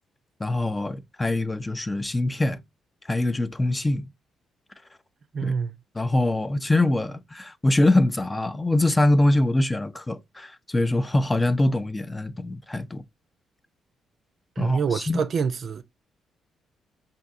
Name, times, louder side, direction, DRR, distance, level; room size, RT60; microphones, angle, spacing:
voice 1, 0.4-2.6 3.0-4.1 5.4-5.5 5.9-13.0 14.6-15.2, left 1 dB, 20° left, 0.5 m, -23 dB
voice 2, 5.3-5.7 14.6-15.8, right 6 dB, 55° right, 0.4 m, -26 dB
5.2 x 2.6 x 2.6 m
hypercardioid pair, 45°, 0 cm